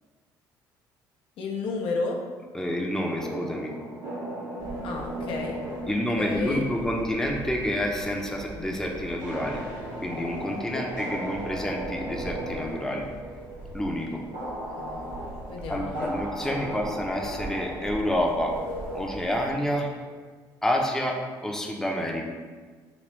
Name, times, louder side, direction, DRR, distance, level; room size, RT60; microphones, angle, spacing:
voice 1, 1.4-2.2 4.8-6.6 10.7-11.3 14.4-14.5 14.8-15.0 15.5-16.1 16.5-16.8, left 3 dB, 65° left, 0 dB, 0.5 m, -33 dB
voice 2, 2.5-3.7 5.9-9.6 10.0-13.0 13.7-14.2 15.7-18.6 18.9-19.9 20.6-22.2, equal, 5° left, 0 dB, 0.6 m, -28 dB
sound 1, 3.1-20.0, right 1 dB, 85° right, 1.0 m, -38 dB
sound 2, 4.6-19.7, right 2 dB, 55° right, 0.9 m, -43 dB
3.2 x 3.0 x 3.1 m, 1.5 s
hypercardioid pair, 55°, 10 cm